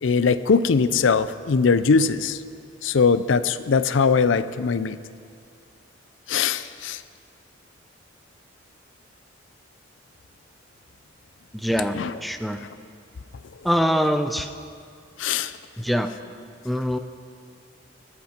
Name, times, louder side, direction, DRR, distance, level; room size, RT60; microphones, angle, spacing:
voice 1, 0.0-2.4 2.8-5.0 6.3-7.0 11.9-12.2 12.6-12.7 15.2-15.5, left 5 dB, 85° left, 14 dB, 0.5 m, -21 dB
voice 2, 11.5-12.0 12.2-12.6 13.6-14.5 15.8-16.1 16.6-17.0, equal, ahead, 8 dB, 0.5 m, -23 dB
22.5 x 8.6 x 4.4 m, 2.3 s
head